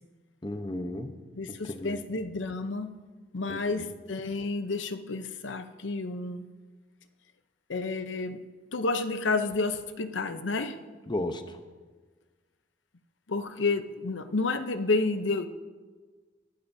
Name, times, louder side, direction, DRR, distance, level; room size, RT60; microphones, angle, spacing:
voice 1, 0.4-1.1 1.5-2.0 3.5-3.9 11.1-11.6, left 1 dB, 25° left, 7 dB, 0.8 m, -34 dB
voice 2, 1.4-2.9 3.3-6.5 7.7-8.4 8.7-10.8 13.3-15.5, left 3 dB, 85° left, 9 dB, 0.7 m, -30 dB
23.5 x 12.0 x 2.7 m, 1.4 s
head